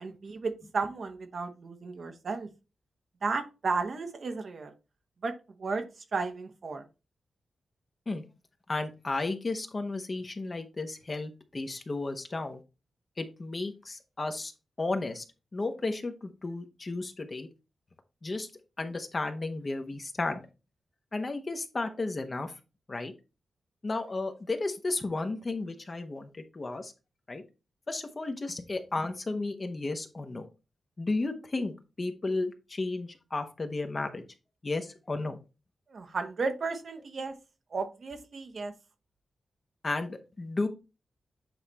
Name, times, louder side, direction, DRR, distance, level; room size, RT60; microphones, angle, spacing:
voice 1, 0.0-2.5 3.2-4.7 5.2-5.8 6.1-6.8 35.9-37.3 37.7-38.7, right 4 dB, 60° right, 6 dB, 1.1 m, -33 dB
voice 2, 8.7-12.6 13.2-14.5 14.8-15.2 15.5-17.5 18.2-18.5 18.8-20.4 21.1-22.5 22.9-23.1 23.8-26.9 27.3-27.4 27.9-30.5 31.0-34.2 34.6-35.4 39.8-40.7, left 3 dB, 40° left, 7 dB, 1.1 m, -33 dB
7.9 x 3.3 x 4.2 m, 0.29 s
cardioid pair, 70°, 0 cm